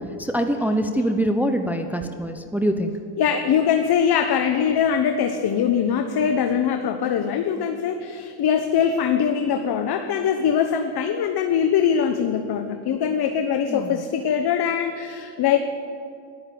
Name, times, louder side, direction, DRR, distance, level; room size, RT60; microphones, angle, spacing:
voice 1, 0.2-2.9 13.7-13.9, right 1 dB, 5° right, 6 dB, 0.9 m, -24 dB
voice 2, 3.2-15.6, left 8 dB, 50° left, 6 dB, 1.1 m, -22 dB
12.5 x 11.0 x 8.5 m, 2.5 s
supercardioid pair, 85°, 50 cm